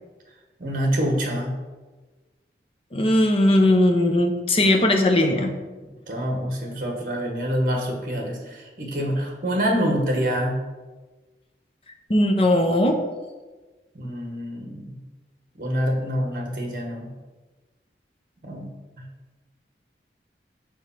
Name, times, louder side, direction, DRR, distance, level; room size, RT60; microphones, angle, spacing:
voice 1, 0.6-1.6 6.1-10.6 13.9-15.0 15.6-17.1 18.4-18.7 19.0-19.1, equal, 50° right, 2 dB, 1.3 m, -26 dB
voice 2, 2.9-5.6 12.1-13.0, left 1 dB, 30° left, 4 dB, 0.7 m, -19 dB
5.0 x 4.5 x 5.8 m, 1.2 s
head